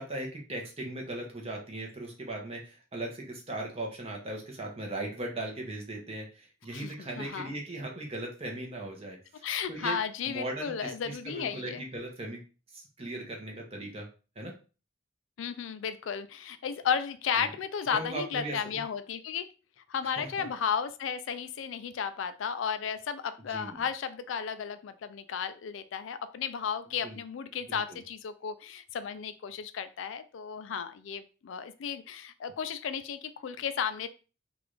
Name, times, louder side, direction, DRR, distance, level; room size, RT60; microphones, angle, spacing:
voice 1, 0.0-10.0 10.2-12.4 12.7-14.1 14.4-14.5 17.4-17.5 17.9-18.8 20.2-20.5 23.5-23.8 27.0-27.2 27.7-28.0, right 1 dB, 30° right, 1 dB, 0.9 m, -38 dB
voice 2, 6.7-7.5 9.4-11.9 15.4-19.5 19.9-34.1, left 7 dB, 80° left, 12 dB, 0.4 m, -34 dB
3.8 x 2.5 x 3.1 m, 0.34 s
head